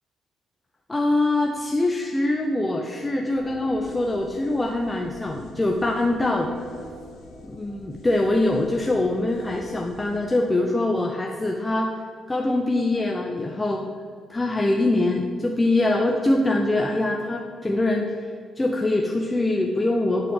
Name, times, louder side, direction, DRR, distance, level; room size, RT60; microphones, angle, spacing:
voice 1, 0.9-6.5 7.4-11.9 12.3-13.8 14.3-18.1 18.6-20.3, left 2 dB, 15° left, 2 dB, 0.9 m, -23 dB
sound 1, 3.4-11.0, left 1 dB, 75° left, 1.9 m, -44 dB
10.5 x 5.8 x 7.4 m, 2.1 s
cardioid pair, 90°, 0 cm